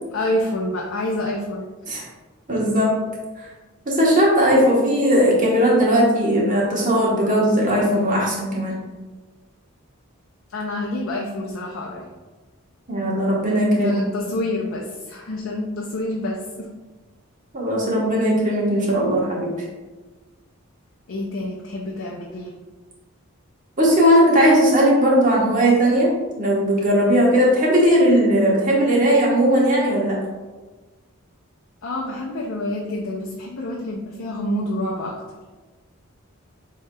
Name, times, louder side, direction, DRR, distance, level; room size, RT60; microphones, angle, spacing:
voice 1, 0.1-1.6 10.5-12.1 13.8-16.7 21.1-22.5 31.8-35.2, left 1 dB, 60° left, -1 dB, 0.5 m, -27 dB
voice 2, 2.5-2.9 3.4-3.5 3.8-8.8 12.9-14.0 17.5-19.6 23.8-26.1 26.4-30.2, equal, 35° right, -4 dB, 1.1 m, -18 dB
7.6 x 2.8 x 2.2 m, 1.3 s
head